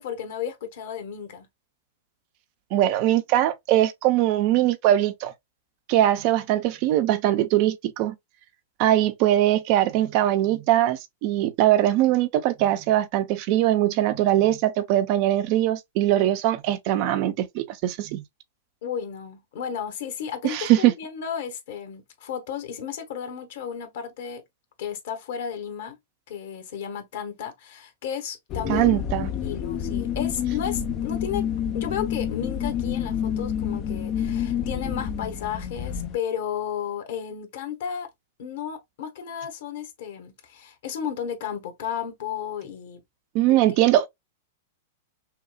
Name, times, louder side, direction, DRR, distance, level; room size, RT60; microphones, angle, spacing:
voice 1, 0.0-1.5 18.8-24.4 24.8-26.0 26.3-29.0 29.2-31.5 31.7-38.1 38.4-43.0 43.5-43.6, left 8 dB, 60° left, 1.4 m, -33 dB
voice 2, 2.7-5.3 5.9-8.1 8.8-18.2 20.4-20.9 28.7-29.3 43.3-44.1, right 13 dB, 45° right, 0.7 m, -21 dB
sound 1, 28.5-36.2, left 8 dB, 35° left, 0.6 m, -28 dB
5.8 x 2.4 x 2.3 m
figure-of-eight pair, 100°, 0 cm